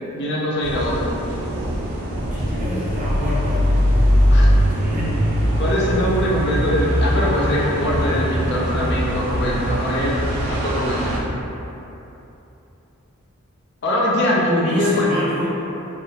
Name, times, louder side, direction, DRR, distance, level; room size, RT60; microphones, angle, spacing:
voice 1, 0.1-1.2 4.3-4.5 5.6-10.2 10.5-11.1 13.8-15.2, left 1 dB, 50° left, -4 dB, 0.5 m, -22 dB
sound 1, 0.6-11.2, equal, 85° right, 0.6 m, -21 dB
voice 2, 2.0-4.1 4.6-5.3 14.6-15.5, equal, 35° right, -6 dB, 0.6 m, -28 dB
3.3 x 2.3 x 2.8 m, 3.0 s
head